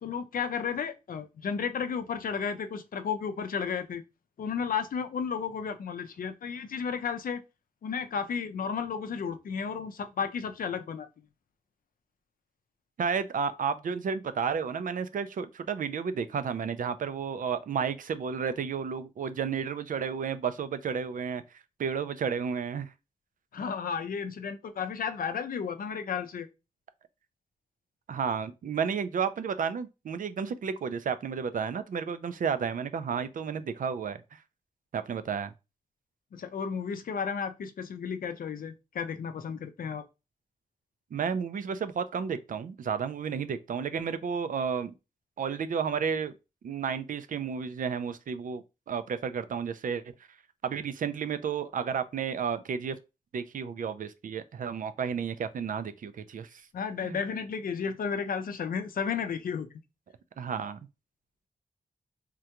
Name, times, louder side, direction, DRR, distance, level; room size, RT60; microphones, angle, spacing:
voice 1, 0.0-4.0 4.4-7.4 7.8-11.1 23.5-26.5 36.3-40.0 56.7-59.7, left 6 dB, 85° left, 0.4 m, -33 dB
voice 2, 13.0-21.4 21.8-22.9 28.1-34.4 34.9-35.5 41.1-44.9 45.4-46.3 46.6-50.0 50.6-53.0 53.3-56.7 57.0-57.2 60.4-60.8, right 6 dB, 70° right, 0.4 m, -32 dB
3.6 x 2.2 x 2.8 m
wide cardioid pair, 115°, 14 cm